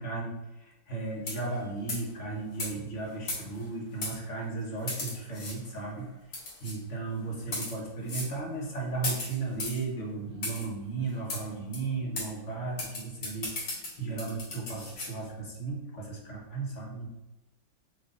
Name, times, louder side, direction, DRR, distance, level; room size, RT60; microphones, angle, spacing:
voice 1, 0.0-6.1 6.6-17.2, right 3 dB, 40° left, -3 dB, 1.6 m, -35 dB
sound 1, 1.2-1.6 1.9-2.1 2.6-2.7 3.3-3.6 4.0-4.1 4.9-5.6 6.3-6.8 7.4-7.7 8.1-8.3 9.0-9.8 10.4-10.7 11.3-11.4 11.7-11.8 12.2-12.3 12.8-15.1, left 2 dB, 80° left, 2.7 m, -35 dB
7.7 x 3.2 x 4.0 m, 0.99 s
omnidirectional pair, 2.0 m